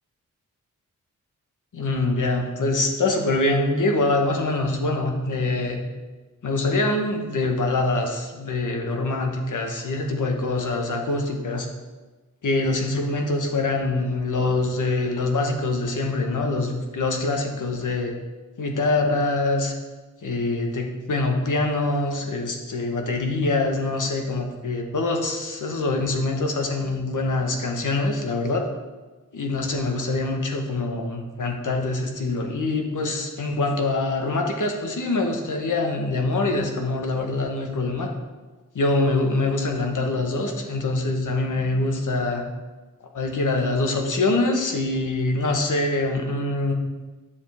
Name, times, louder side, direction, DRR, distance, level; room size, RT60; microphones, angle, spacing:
voice 1, 1.7-5.8 6.4-11.7 12.4-18.1 18.6-19.7 20.2-28.6 29.3-38.1 38.7-42.4 43.1-46.7, left 2 dB, 65° left, 3 dB, 1.4 m, -24 dB
11.5 x 7.3 x 3.5 m, 1.2 s
wide cardioid pair, 105°, 33 cm